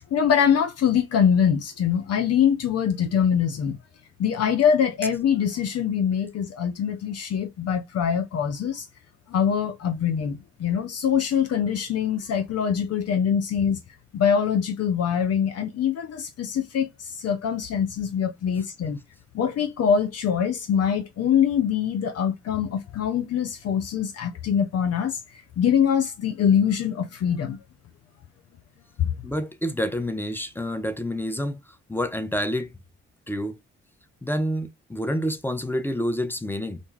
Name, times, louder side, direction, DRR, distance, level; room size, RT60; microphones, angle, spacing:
voice 1, 0.1-3.8 4.2-8.8 9.3-13.8 14.1-16.9 17.2-19.0 19.3-25.2 25.6-27.6 29.0-29.1, left 8 dB, 55° left, 0.6 m, -23 dB
voice 2, 29.2-31.6 31.9-32.7 33.3-33.6 34.2-36.8, equal, 5° left, 0.6 m, -28 dB
2.6 x 2.2 x 3.1 m
hypercardioid pair, 45°, 30 cm